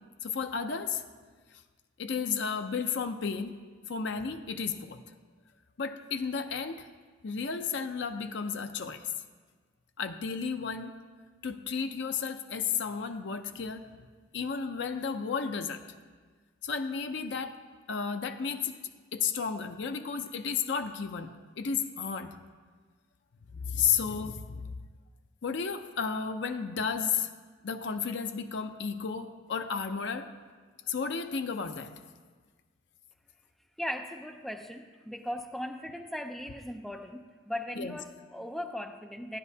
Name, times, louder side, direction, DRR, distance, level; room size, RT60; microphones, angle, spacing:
voice 1, 0.2-1.0 2.0-3.5 3.9-5.0 5.8-6.8 7.2-9.0 10.0-10.9 11.4-14.1 14.3-15.8 16.6-17.5 17.9-18.7 19.1-22.3 23.5-24.8 25.4-27.3 27.6-30.3 30.9-31.9 37.8-38.0, left 6 dB, 60° left, 7 dB, 0.5 m, -33 dB
voice 2, 33.8-39.4, left 1 dB, ahead, 5 dB, 0.4 m, -38 dB
13.0 x 9.6 x 2.8 m, 1.5 s
head